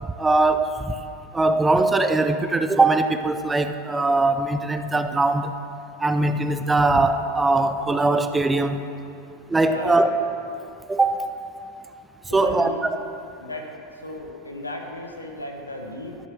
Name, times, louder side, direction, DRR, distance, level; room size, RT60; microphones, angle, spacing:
voice 1, 0.2-0.9 1.3-5.5 6.0-8.8 9.5-10.1 10.9-11.2 12.3-12.7, right 2 dB, 15° right, 9 dB, 0.7 m, -21 dB
voice 2, 9.6-10.2 12.3-12.8 13.4-16.2, left 1 dB, 90° left, 2 dB, 1.3 m, -35 dB
12.5 x 7.6 x 6.3 m, 2.7 s
figure-of-eight pair, 85°, 0 cm